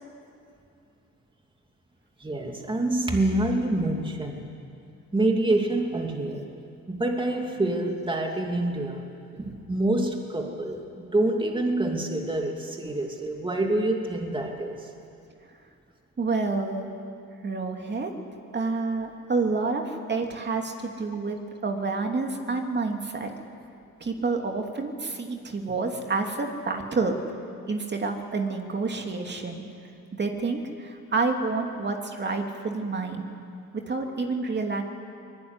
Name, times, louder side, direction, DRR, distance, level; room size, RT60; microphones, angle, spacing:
voice 1, 2.2-4.5 5.1-6.5 6.9-9.1 9.3-14.9 34.1-34.2, right 2 dB, 15° right, 2 dB, 2.6 m, -27 dB
voice 2, 16.2-16.9 17.4-18.1 18.5-21.4 21.6-23.3 24.0-27.1 27.7-29.7 30.1-33.2 33.9-34.8, right 3 dB, 35° right, 3 dB, 2.9 m, -28 dB
24.0 x 20.0 x 9.8 m, 2.5 s
cardioid pair, 90°, 30 cm